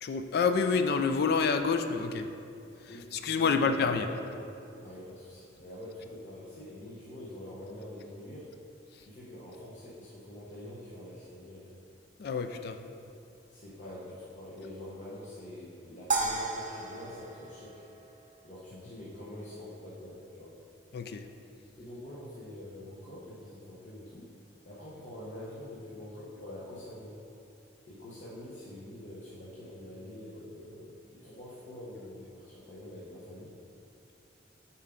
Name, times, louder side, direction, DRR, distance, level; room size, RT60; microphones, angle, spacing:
voice 1, 0.0-2.3 3.1-4.1 12.2-12.8 20.9-21.2, left 5 dB, 60° left, 7 dB, 0.4 m, -28 dB
voice 2, 2.9-4.2 4.7-8.5 8.9-11.7 13.5-17.8 18.4-20.6 21.8-24.3 24.6-27.2 27.9-33.5, left 1 dB, 40° left, -8 dB, 1.0 m, -45 dB
sound 1, 16.1-18.5, right 3 dB, 45° right, 0.6 m, -34 dB
7.3 x 4.5 x 3.8 m, 2.6 s
head